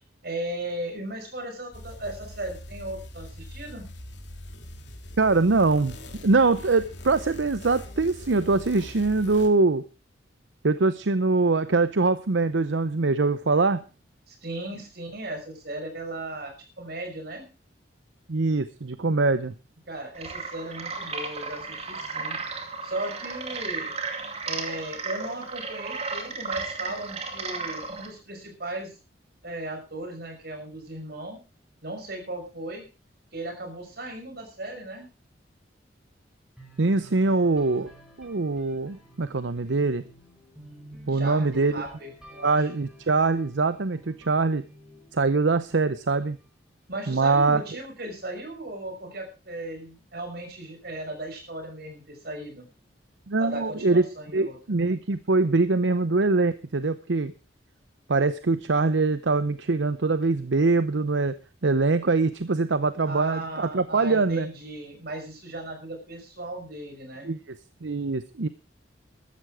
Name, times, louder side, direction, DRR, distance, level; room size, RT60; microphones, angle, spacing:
voice 1, 0.2-3.9 14.3-16.5 16.8-17.5 19.9-22.4 22.8-23.9 24.4-28.9 29.4-31.4 31.8-32.9 33.3-35.1 41.1-42.7 46.9-52.7 53.4-54.6 63.1-67.3, right 1 dB, 60° right, 4 dB, 5.9 m, -36 dB
sound 1, 1.7-9.5, left 1 dB, 70° left, 3.1 m, -42 dB
voice 2, 5.2-6.0 6.2-9.8 10.6-13.8 18.3-19.5 36.8-37.9 38.2-40.0 41.1-41.8 42.4-44.6 45.1-46.4 47.1-47.6 53.3-54.0 54.3-57.3 58.1-61.4 61.6-64.5 67.2-67.4 67.8-68.5, right 3 dB, 80° right, 13 dB, 0.8 m, -23 dB
sound 2, 20.1-28.1, right 4 dB, 35° right, 2.5 m, -34 dB
sound 3, 36.6-46.4, right 1 dB, 5° right, 4.9 m, -51 dB
14.5 x 13.0 x 4.8 m, 0.32 s
head